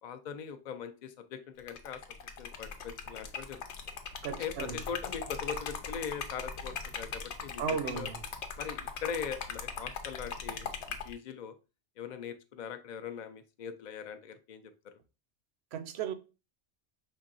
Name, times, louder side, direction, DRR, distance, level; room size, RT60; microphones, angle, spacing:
voice 1, 0.0-2.0 2.4-3.6 4.4-8.1 8.6-11.6 12.0-14.6, left 7 dB, 55° left, 0.6 m, -41 dB
Liquid, 1.6-11.1, left 6 dB, 75° left, 1.0 m, -40 dB
voice 2, 4.2-4.8 7.6-8.2 15.7-16.1, right 8 dB, 70° right, 0.9 m, -35 dB
5.4 x 3.6 x 2.5 m
omnidirectional pair, 1.2 m